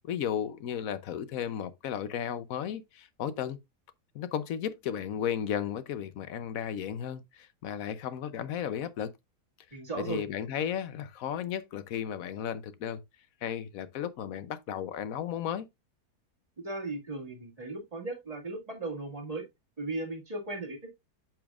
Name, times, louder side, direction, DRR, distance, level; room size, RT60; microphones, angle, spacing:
voice 1, 0.0-3.6 4.1-9.1 9.9-13.0 13.4-15.7, left 9 dB, 65° left, 1.0 m, -34 dB
voice 2, 9.7-10.2 16.6-19.4 19.8-20.9, right 2 dB, 25° right, 2.1 m, -37 dB
8.4 x 6.1 x 2.4 m
omnidirectional pair, 1.7 m